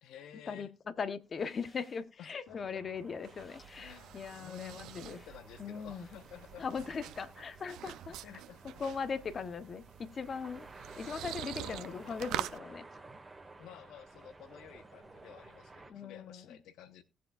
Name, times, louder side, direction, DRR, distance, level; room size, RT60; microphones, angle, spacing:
voice 1, 0.0-0.7 2.2-2.9 3.8-6.9 8.2-8.8 11.6-12.2 13.6-17.0, left 10 dB, 85° left, 1.0 m, -53 dB
voice 2, 1.0-5.2 5.6-6.1 6.6-8.3 8.6-10.7 11.0-13.0 15.9-16.5, left 5 dB, 45° left, 0.9 m, -39 dB
sound 1, 1.2-2.6 2.9-4.3 4.7-6.4 6.7-7.7, left 1 dB, 30° left, 7.6 m, -64 dB
sound 2, 2.5-15.9, right 2 dB, 15° right, 1.8 m, -54 dB
sound 3, 3.0-12.6, right 13 dB, 90° right, 0.6 m, -45 dB
18.5 x 7.4 x 2.4 m
cardioid pair, 90°, 0 cm